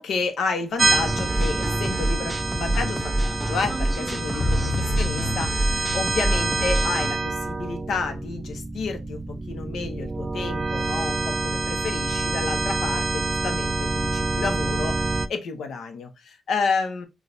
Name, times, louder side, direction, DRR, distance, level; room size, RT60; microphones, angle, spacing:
voice 1, 0.0-17.1, left 4 dB, 85° left, 0.8 m, -30 dB
sound 1, 0.8-15.3, right 3 dB, 25° right, 0.4 m, -27 dB
sound 2, 1.0-7.1, right 1 dB, ahead, 0.7 m, -27 dB
sound 3, 4.4-8.9, left 3 dB, 55° left, 0.5 m, -33 dB
6.0 x 2.3 x 2.6 m
wide cardioid pair, 125°, 0 cm